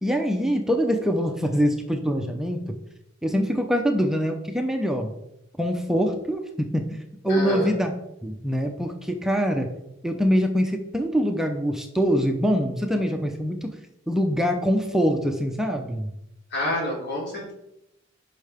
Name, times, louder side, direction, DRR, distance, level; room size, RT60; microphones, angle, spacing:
voice 1, 0.0-2.6 3.2-5.1 5.6-6.9 7.2-7.9 8.2-9.7 10.0-13.7 14.1-16.1, equal, ahead, 4 dB, 0.6 m, -24 dB
voice 2, 7.3-7.7 16.5-17.5, left 1 dB, 60° left, -4 dB, 3.5 m, -28 dB
10.0 x 5.6 x 3.5 m, 0.81 s
head